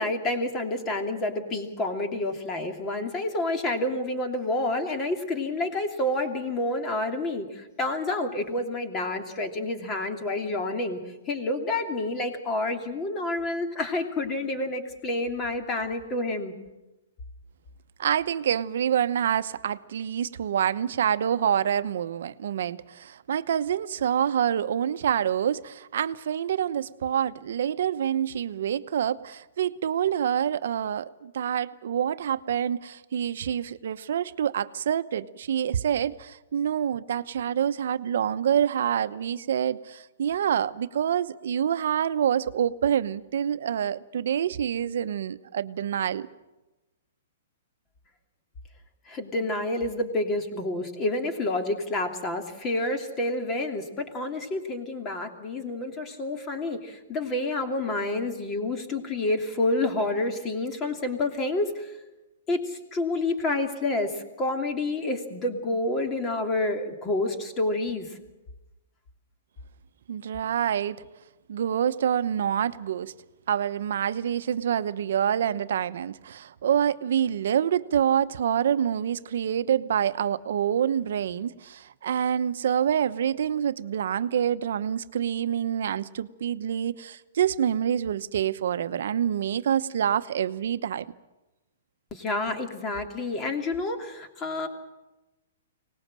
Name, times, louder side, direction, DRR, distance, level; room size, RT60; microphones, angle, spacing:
voice 1, 0.0-11.0 11.3-16.5 49.1-61.9 62.5-68.2 92.1-94.7, left 2 dB, 20° left, 2.8 m, -29 dB
voice 2, 18.0-46.3 70.1-71.0 71.5-73.1 73.5-91.1, right 9 dB, 65° right, 0.9 m, -27 dB
24.0 x 19.5 x 7.6 m
hypercardioid pair, 155°, 0 cm